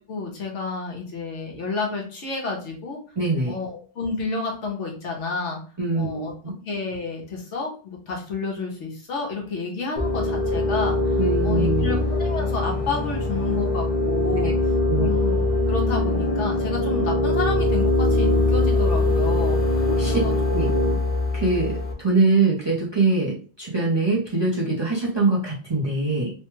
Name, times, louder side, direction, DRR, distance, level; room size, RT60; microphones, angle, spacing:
voice 1, 0.1-3.0 3.5-5.6 5.9-6.3 6.6-14.5 15.0-19.6 20.0-20.3 20.6-21.0, left 4 dB, 80° left, 0 dB, 1.2 m, -30 dB
voice 2, 3.2-3.5 5.8-6.5 11.2-11.9 14.4-14.5 14.9-15.1 19.9-20.2 20.5-20.7 21.3-26.3, right 3 dB, 30° right, -4 dB, 0.6 m, -23 dB
sound 1, 10.0-21.9, left 2 dB, 40° left, 0.6 m, -22 dB
3.2 x 2.2 x 3.0 m, 0.40 s
omnidirectional pair, 1.2 m